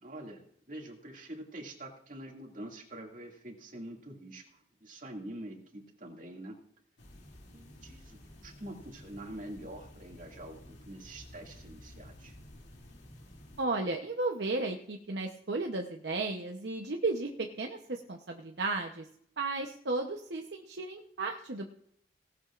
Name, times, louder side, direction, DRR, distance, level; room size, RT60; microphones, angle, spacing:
voice 1, 0.0-6.6 7.5-12.4, right 1 dB, 50° right, 1 dB, 2.3 m, -46 dB
sound 1, 7.0-13.6, left 1 dB, 75° left, 2.7 m, -52 dB
voice 2, 13.6-19.1 19.4-21.7, right 3 dB, 70° right, 2 dB, 0.9 m, -34 dB
17.5 x 13.0 x 2.5 m, 0.66 s
head